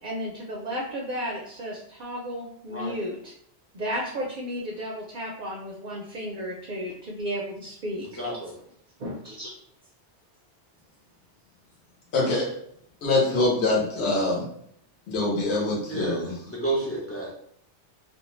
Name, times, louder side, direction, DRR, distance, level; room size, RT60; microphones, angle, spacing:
voice 1, 0.0-3.3 3.7-8.1 9.0-9.6, equal, 55° right, -2 dB, 0.6 m, -33 dB
voice 2, 8.2-8.5 15.9-17.3, right 2 dB, 25° left, -5 dB, 0.3 m, -30 dB
voice 3, 12.1-12.5 13.0-14.5 15.1-16.3, left 2 dB, 70° left, -5 dB, 1.0 m, -24 dB
2.5 x 2.2 x 3.0 m, 0.68 s
omnidirectional pair, 1.2 m